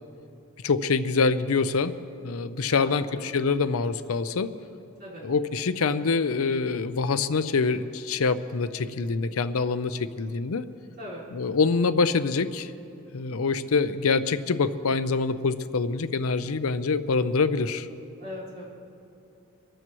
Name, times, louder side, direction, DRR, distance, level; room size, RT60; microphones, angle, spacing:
voice 1, 0.6-1.9 2.2-4.5 5.2-10.6 11.3-12.7 13.1-17.9, left 4 dB, 80° left, 12 dB, 0.6 m, -25 dB
voice 2, 2.7-3.2 5.0-5.2 11.0-11.2 18.2-18.6, left 1 dB, 45° right, -8 dB, 4.5 m, -39 dB
24.5 x 14.5 x 3.0 m, 2.7 s
head